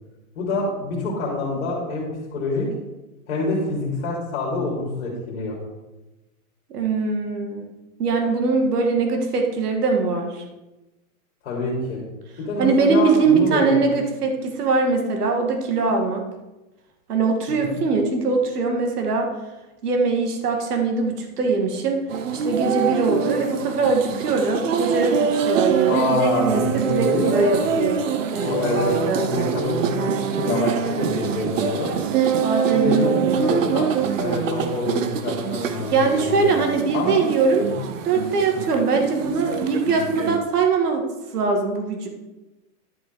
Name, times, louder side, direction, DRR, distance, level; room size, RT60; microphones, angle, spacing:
voice 1, 0.3-2.7 3.3-5.6 11.4-12.0 12.4-13.7 17.5-17.8 25.9-27.7 28.4-31.9 32.7-36.5 36.9-37.3 37.6-37.7, left 2 dB, 50° left, -3 dB, 3.3 m, -26 dB
voice 2, 6.7-7.7 8.0-10.4 12.6-16.3 17.1-19.3 19.8-22.0 22.3-28.0 28.3-29.3 32.4-33.7 35.9-37.7 38.0-41.0 41.3-42.1, right 4 dB, 85° right, 3 dB, 2.4 m, -22 dB
sound 1, 22.1-40.4, right 7 dB, 55° right, 0.9 m, -25 dB
11.5 x 7.1 x 4.8 m, 1.0 s
supercardioid pair, 175°, 45 cm